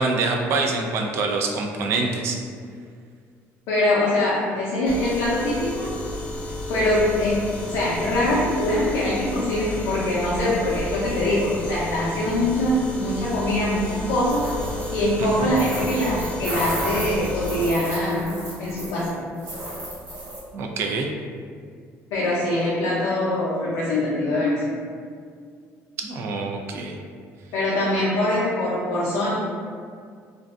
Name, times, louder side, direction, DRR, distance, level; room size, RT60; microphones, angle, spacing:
voice 1, 0.0-2.4 15.2-15.5 20.5-21.1 26.0-27.0, right 3 dB, 55° right, 2 dB, 0.3 m, -25 dB
voice 2, 3.7-5.9 6.7-14.5 14.9-18.3 18.6-19.2 22.1-24.6 27.5-29.3, left 1 dB, 75° left, -7 dB, 0.5 m, -23 dB
sound 1, 4.8-17.7, left 1 dB, 25° left, 0.5 m, -32 dB
sound 2, 14.3-15.0 15.5-19.1 19.4-20.4, right 1 dB, 75° right, 1.1 m, -33 dB
2.5 x 2.2 x 2.4 m, 2.1 s
cardioid pair, 140°, 5 cm